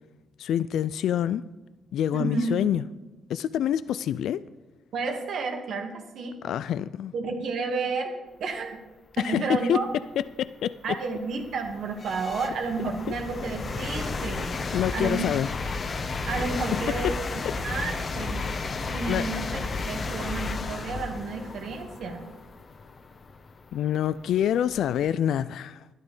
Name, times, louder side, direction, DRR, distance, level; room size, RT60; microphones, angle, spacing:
voice 1, 0.4-1.4 1.9-2.8 3.3-4.4 6.4-7.1 9.2-9.8 10.2-10.8 14.7-15.5 18.8-19.3 23.7-25.8, left 10 dB, 75° left, 0.3 m, -26 dB
voice 2, 2.1-2.6 4.9-6.4 7.1-8.1 8.4-8.8 9.2-9.9 10.8-15.3 16.3-17.2 17.6-18.4 18.9-22.3, right 4 dB, 70° right, 2.2 m, -31 dB
sound 1, 9.6-9.7 10.3-25.1, left 3 dB, 45° left, 1.0 m, -33 dB
12.0 x 10.5 x 5.5 m
cardioid pair, 75°, 0 cm